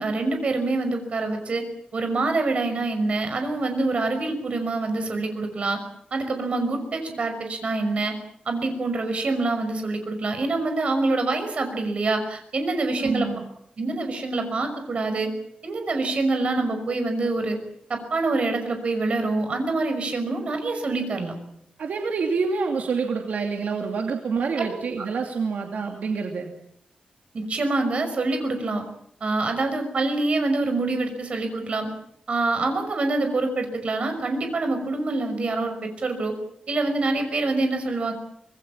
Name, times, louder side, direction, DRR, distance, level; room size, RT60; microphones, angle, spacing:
voice 1, 0.0-1.7 1.9-5.8 6.1-8.1 8.5-13.3 13.8-15.3 15.6-17.6 17.9-21.3 24.6-25.1 27.3-28.8 29.2-31.9 32.3-36.3 36.7-38.1, right 3 dB, 50° right, 7 dB, 5.8 m, -25 dB
voice 2, 13.0-13.4 21.8-26.5, right 5 dB, 80° right, 3 dB, 2.6 m, -27 dB
26.0 x 20.5 x 7.4 m, 0.75 s
wide cardioid pair, 140°, 3 cm